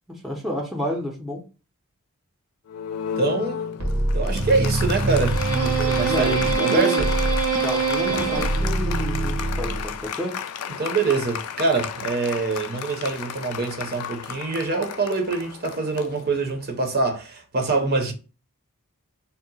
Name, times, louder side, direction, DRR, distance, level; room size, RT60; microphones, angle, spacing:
voice 1, 0.1-1.4 6.1-7.1 7.6-10.4, left 1 dB, ahead, 0.5 m, -30 dB
Applause, 2.7-16.7, left 8 dB, 85° left, 0.3 m, -34 dB
voice 2, 3.2-3.6 4.1-7.1 10.8-18.1, right 3 dB, 45° right, 0.6 m, -25 dB
sound 1, 3.8-10.0, right 3 dB, 85° right, 0.9 m, -23 dB
2.7 x 2.1 x 3.9 m
head